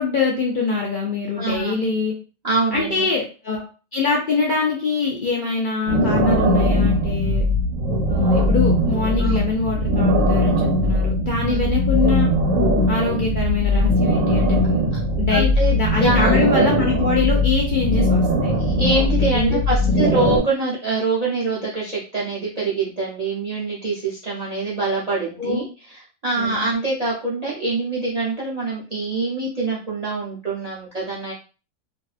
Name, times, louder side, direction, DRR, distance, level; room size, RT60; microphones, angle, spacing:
voice 1, 0.0-2.1 2.7-3.6 3.9-7.4 8.1-12.3 12.9-18.5 19.3-19.6 19.9-20.0 25.4-25.6 26.4-26.7, left 4 dB, 60° left, -2 dB, 0.5 m, -24 dB
voice 2, 1.4-1.7 2.4-3.1 9.2-9.4 11.5-11.7 15.3-16.5 18.6-31.3, right 3 dB, 55° right, -5 dB, 0.4 m, -25 dB
sound 1, 5.9-20.4, left 1 dB, 85° right, 1.2 m, -19 dB
2.6 x 2.3 x 2.3 m, 0.36 s
omnidirectional pair, 1.4 m